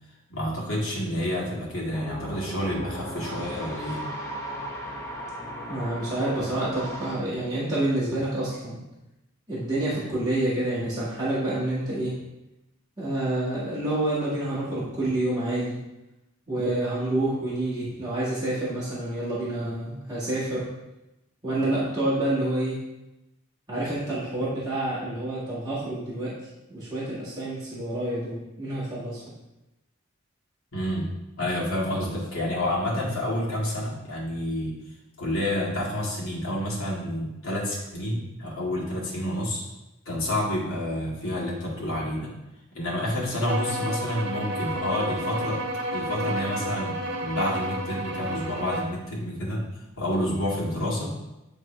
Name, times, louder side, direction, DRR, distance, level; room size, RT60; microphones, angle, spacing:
voice 1, 0.3-4.0 30.7-31.1 31.4-34.7 35.2-39.6 40.1-42.3 42.7-45.6 45.9-51.1, left 1 dB, 75° left, -4 dB, 2.0 m, -29 dB
sound 1, 1.9-7.1, equal, 15° left, 0.9 m, -36 dB
voice 2, 5.7-8.8 9.5-12.2 13.0-15.8 16.5-20.7 21.4-22.8 23.7-26.3 26.7-29.2, right 1 dB, 20° right, -11 dB, 1.8 m, -28 dB
sound 2, 43.4-49.0, right 1 dB, 55° right, 1.0 m, -31 dB
9.2 x 3.6 x 3.3 m, 0.95 s
head